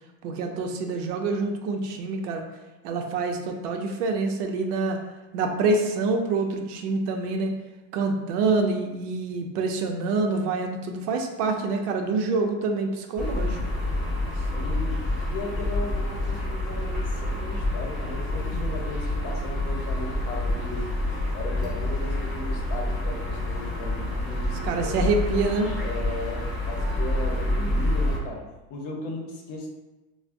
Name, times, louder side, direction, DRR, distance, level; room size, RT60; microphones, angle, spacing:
voice 1, 0.2-2.4 2.8-5.0 5.3-7.5 7.9-13.6 24.6-25.7, right 3 dB, 85° right, 4 dB, 0.7 m, -26 dB
sound 1, 13.2-28.2, left 1 dB, ahead, 0.4 m, -28 dB
voice 2, 14.3-15.0 15.3-20.9 21.3-25.0 25.8-29.7, left 2 dB, 50° left, 0 dB, 0.8 m, -36 dB
4.5 x 2.1 x 2.5 m, 1.1 s
supercardioid pair, 160°, 45 cm